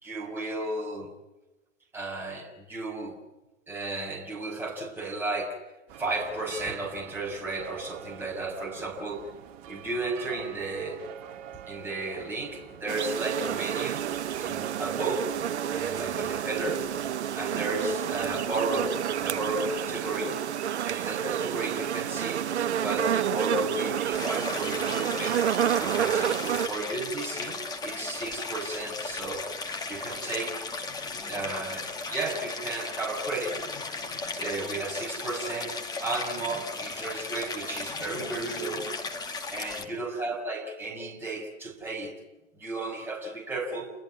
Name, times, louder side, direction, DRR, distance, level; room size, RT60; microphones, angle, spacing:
voice 1, 0.0-1.1 1.9-3.2 3.7-5.6 6.0-9.3 9.7-11.0 11.7-14.0 14.4-15.3 15.7-16.9 17.3-20.4 20.8-22.4 22.7-25.4 25.8-29.5 29.9-30.7 31.3-33.6 34.4-38.9 39.5-42.2 42.6-43.9, right 2 dB, 5° right, -3 dB, 5.8 m, -33 dB
sound 1, 5.9-20.2, right 9 dB, 30° right, 1.5 m, -43 dB
sound 2, 12.9-26.7, right 9 dB, 60° right, 0.9 m, -29 dB
Stream, 24.1-39.9, left 3 dB, 10° left, 2.1 m, -36 dB
29.5 x 21.0 x 8.5 m, 1.1 s
hypercardioid pair, 130°, 39 cm